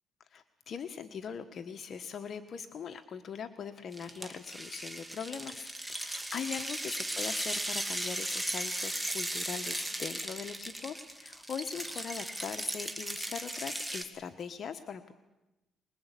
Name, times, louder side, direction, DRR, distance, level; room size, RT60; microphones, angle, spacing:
voice 1, 0.2-15.1, left 7 dB, 55° left, 8 dB, 1.3 m, -41 dB
sound 1, 3.9-14.0, right 1 dB, 5° right, 2.4 m, -37 dB
24.0 x 21.5 x 8.4 m, 0.98 s
cardioid pair, 90°, 0 cm